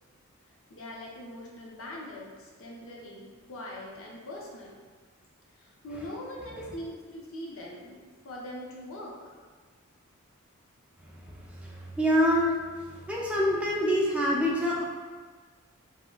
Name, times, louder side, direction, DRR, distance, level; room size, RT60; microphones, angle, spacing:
voice 1, 0.7-4.8 5.6-9.2, left 1 dB, 65° left, -2 dB, 0.6 m, -42 dB
voice 2, 11.6-12.5 13.1-14.9, equal, 5° right, -4 dB, 0.4 m, -25 dB
3.6 x 2.0 x 2.3 m, 1.5 s
head